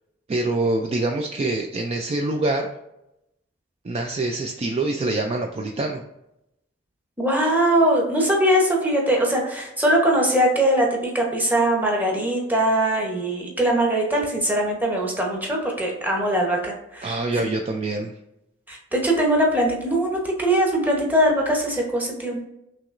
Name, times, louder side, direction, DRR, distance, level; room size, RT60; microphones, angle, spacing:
voice 1, 0.3-2.7 3.8-6.0 17.0-18.1, right 2 dB, 35° right, 3 dB, 0.3 m, -25 dB
voice 2, 7.2-17.4 18.7-22.4, right 1 dB, 10° right, -1 dB, 1.0 m, -21 dB
5.9 x 2.9 x 2.5 m, 0.85 s
head